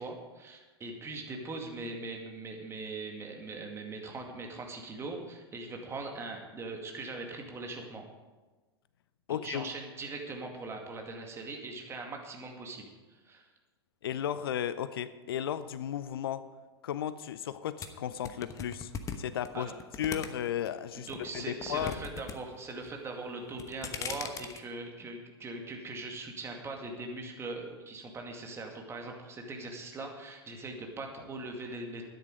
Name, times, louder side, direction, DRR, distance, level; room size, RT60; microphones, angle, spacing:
voice 1, 0.0-8.0 9.4-13.5 19.5-19.7 20.9-32.0, right 3 dB, 20° right, 2 dB, 2.2 m, -41 dB
voice 2, 9.3-9.7 14.0-16.4 16.8-18.9 19.2-19.7 20.0-21.1 21.3-21.9, left 10 dB, 60° left, 14 dB, 0.6 m, -34 dB
sound 1, 17.8-20.7 21.1-22.4 22.6-23.1 23.5-24.6, left 7 dB, 25° left, 1.0 m, -39 dB
12.5 x 10.0 x 5.2 m, 1.2 s
figure-of-eight pair, 95°, 14 cm